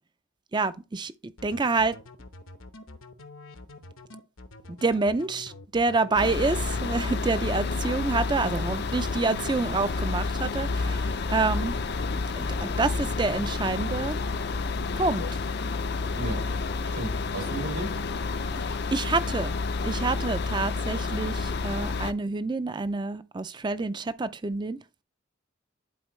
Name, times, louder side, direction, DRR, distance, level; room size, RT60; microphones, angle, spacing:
voice 1, 0.5-1.1 1.4-2.0 4.7-11.7 12.4-14.2 15.0-15.2 18.6-19.5 19.8-24.8, right 3 dB, 20° right, 0.4 m, -27 dB
sound 1, 1.4-15.7 16.1-16.7 17.1-18.0 18.3-18.8, left 2 dB, 80° left, 1.0 m, -45 dB
sound 2, 6.2-22.1, left 4 dB, 50° left, 0.5 m, -30 dB
voice 2, 16.1-16.6 16.9-18.0, right 2 dB, 80° right, 3.1 m, -34 dB
11.0 x 4.4 x 3.1 m
head